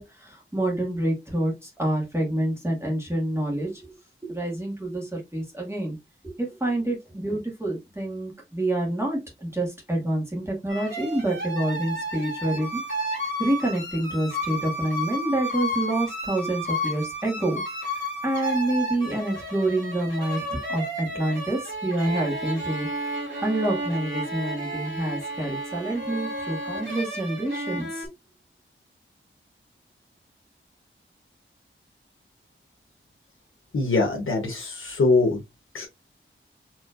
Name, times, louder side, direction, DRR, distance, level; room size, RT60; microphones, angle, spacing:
voice 1, 0.0-3.9 4.2-6.0 6.2-12.8 13.4-17.6 17.9-22.9 23.4-28.1, right 1 dB, 10° right, -2 dB, 2.0 m, -27 dB
sound 1, 10.7-28.1, equal, 60° right, 2.4 m, -32 dB
voice 2, 33.7-35.4 35.7-35.9, left 3 dB, 75° left, 0 dB, 1.2 m, -23 dB
4.5 x 3.6 x 2.5 m, 0.21 s
wide cardioid pair, 70°, 21 cm